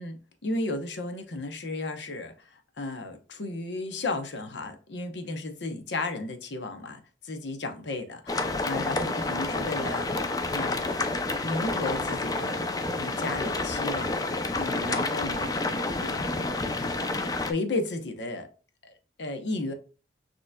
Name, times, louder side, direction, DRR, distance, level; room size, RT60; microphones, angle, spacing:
voice 1, 0.0-10.9 11.4-12.6 13.0-14.1 14.6-15.6 16.0-16.2 17.4-18.5 18.8-18.9 19.2-19.7, left 2 dB, 85° left, 0.9 m, -34 dB
sound 1, 8.3-17.5, left 2 dB, 20° left, 0.4 m, -29 dB
6.5 x 3.0 x 2.2 m
head